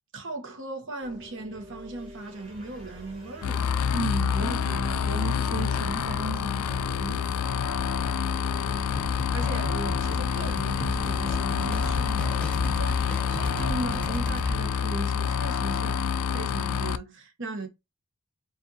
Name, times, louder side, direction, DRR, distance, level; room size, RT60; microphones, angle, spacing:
voice 1, 0.1-3.7 8.6-16.1 16.3-17.7, right 2 dB, 55° right, 1.2 m, -38 dB
sound 1, 1.0-14.8, left 1 dB, 35° right, 2.7 m, -44 dB
sound 2, 3.4-17.0, left 7 dB, 75° left, 0.3 m, -27 dB
voice 2, 3.9-7.3, right 2 dB, 80° right, 0.9 m, -34 dB
sound 3, 9.0-14.6, left 1 dB, 5° left, 0.9 m, -34 dB
7.3 x 2.5 x 2.9 m
head